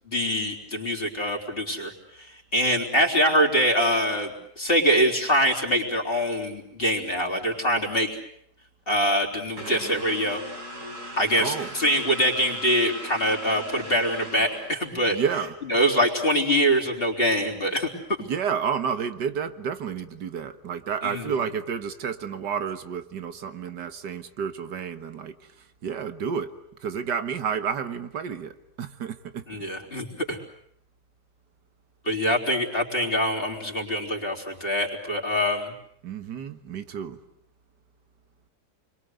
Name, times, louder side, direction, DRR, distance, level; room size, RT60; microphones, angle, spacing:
voice 1, 0.1-1.9 2.5-8.1 8.9-10.4 11.2-15.2 15.6-17.9 21.0-21.3 29.5-30.4 32.1-35.7, equal, 35° left, 0 dB, 4.2 m, -24 dB
sound 1, 9.6-15.2, equal, 70° right, 5.0 m, -39 dB
voice 2, 11.4-11.7 15.1-15.5 18.3-25.3 25.8-26.5 26.8-29.4 36.0-37.2, right 7 dB, 90° right, 10 dB, 2.0 m, -30 dB
30.0 x 23.0 x 8.2 m, 0.71 s
omnidirectional pair, 1.8 m